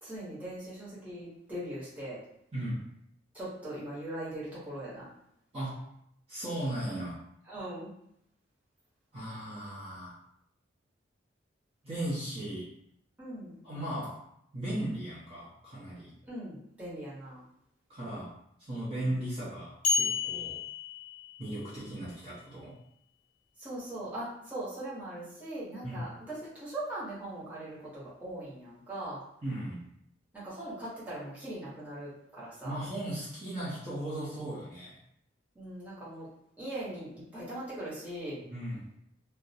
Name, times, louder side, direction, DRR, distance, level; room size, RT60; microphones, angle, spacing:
voice 1, 0.0-2.2 3.3-5.1 7.5-7.9 13.2-13.6 16.3-17.4 23.6-29.2 30.3-32.8 35.5-36.3 36.6-38.4, right 1 dB, 10° right, -10 dB, 0.9 m, -40 dB
voice 2, 2.5-2.9 5.5-5.9 6.3-7.2 9.1-10.2 11.8-12.7 13.6-14.2 14.5-16.1 17.9-18.3 18.6-20.6 21.4-22.7 25.8-26.1 29.4-29.8 32.6-35.0 38.4-38.8, right 1 dB, 30° right, -9 dB, 0.7 m, -37 dB
sound 1, 19.8-21.7, left 5 dB, 40° left, 0.4 m, -31 dB
2.3 x 2.1 x 2.7 m, 0.73 s
head